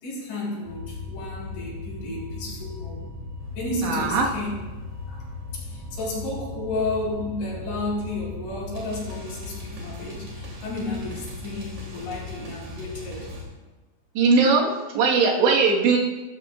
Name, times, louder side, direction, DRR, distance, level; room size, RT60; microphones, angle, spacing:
voice 1, 0.0-3.0 3.5-4.5 5.1-5.2 5.5-13.3, left 2 dB, 90° left, -5 dB, 6.8 m, -32 dB
sound 1, 0.6-13.4, left 3 dB, 45° right, 4.0 m, -37 dB
voice 2, 3.8-4.2 14.2-16.0, right 4 dB, 80° right, -1 dB, 3.9 m, -20 dB
16.5 x 13.5 x 2.5 m, 1.2 s
omnidirectional pair, 5.1 m